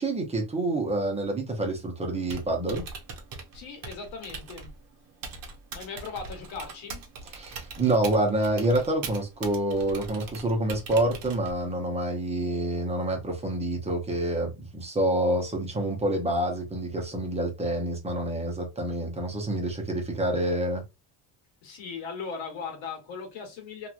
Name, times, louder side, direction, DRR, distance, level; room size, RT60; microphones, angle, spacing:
voice 1, 0.0-2.8 7.4-20.8, right 1 dB, 15° right, 0.7 m, -27 dB
Typing, 2.1-11.7, right 4 dB, 40° right, 0.8 m, -42 dB
voice 2, 3.5-4.7 5.7-7.0 21.6-23.9, left 5 dB, 65° left, 1.3 m, -38 dB
3.0 x 2.5 x 2.4 m
cardioid pair, 155°, 50 cm